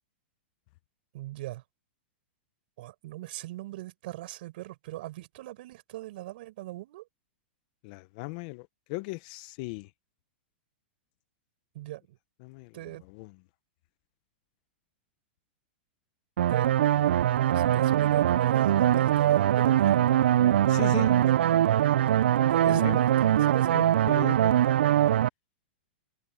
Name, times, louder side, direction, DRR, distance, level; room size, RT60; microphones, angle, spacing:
voice 1, 1.1-1.6 2.8-7.1 11.7-12.2 12.7-13.0 16.5-16.7 17.4-20.1 20.8-21.8 22.4-24.2, right 17 dB, 60° right, 7.5 m, -39 dB
voice 2, 7.8-9.9 12.4-13.4 20.7-21.2 22.6-23.0 23.7-24.5, left 24 dB, 50° left, 0.8 m, -38 dB
sound 1, 16.4-25.3, right 11 dB, 80° right, 0.3 m, -22 dB
open air
hypercardioid pair, 135°, 6 cm